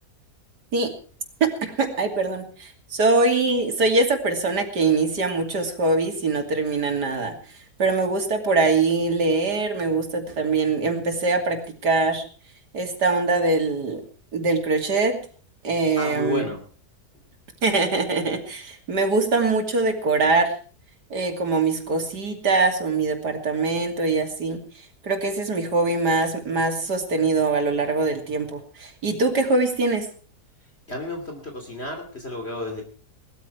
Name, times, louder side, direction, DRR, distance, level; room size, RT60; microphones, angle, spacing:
voice 1, 1.4-7.4 7.8-12.2 12.7-14.0 14.3-15.2 15.6-16.5 17.6-20.5 21.1-24.6 25.0-30.1, right 3 dB, 85° right, 5 dB, 3.2 m, -23 dB
voice 2, 16.0-16.6 30.9-32.8, left 2 dB, 40° left, 3 dB, 3.2 m, -31 dB
19.0 x 13.5 x 4.6 m, 0.42 s
omnidirectional pair, 1.7 m